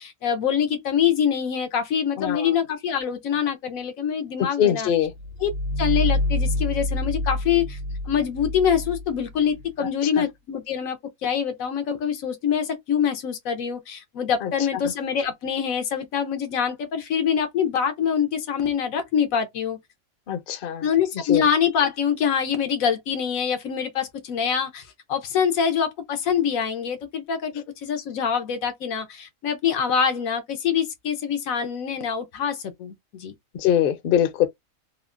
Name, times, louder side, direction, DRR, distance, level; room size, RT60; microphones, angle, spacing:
voice 1, 0.0-4.9 5.4-5.5 5.8-7.8 8.1-19.8 20.8-33.3, left 7 dB, 90° left, 1.1 m, -25 dB
voice 2, 2.2-2.5 4.6-5.1 9.8-9.9 10.2-10.3 14.4-14.5 20.3-20.9 21.3-21.4 33.6-34.5, left 10 dB, 55° left, 0.6 m, -22 dB
sound 1, 5.0-9.7, left 1 dB, 45° right, 0.9 m, -27 dB
3.2 x 2.1 x 2.4 m
omnidirectional pair, 1.4 m